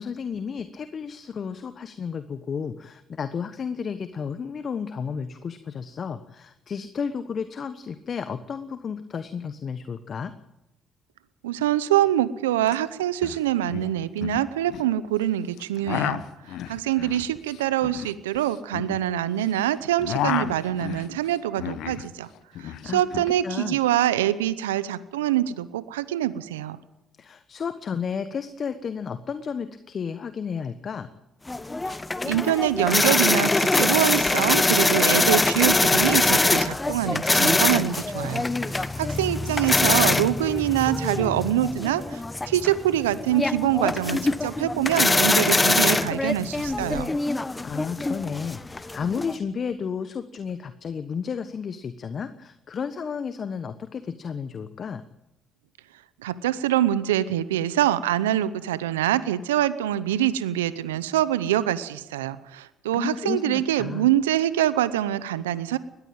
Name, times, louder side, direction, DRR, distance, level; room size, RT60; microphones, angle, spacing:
voice 1, 0.0-10.3 22.8-23.0 23.4-23.8 27.2-31.1 47.6-55.0 63.0-64.1, left 6 dB, 50° left, 11 dB, 1.2 m, -32 dB
voice 2, 11.4-16.2 16.7-22.3 22.6-26.8 32.2-38.5 38.7-47.1 56.2-65.8, right 12 dB, 90° right, 16 dB, 0.8 m, -25 dB
sound 1, 12.7-12.8 13.0-13.4 13.7-14.9 15.6-19.5 19.8-22.1 22.3-23.3, left 11 dB, 70° left, 1.1 m, -32 dB
sound 2, 31.5-49.4, left 2 dB, 20° left, 1.1 m, -23 dB
20.0 x 14.5 x 8.9 m, 0.92 s
hypercardioid pair, 50°, 0 cm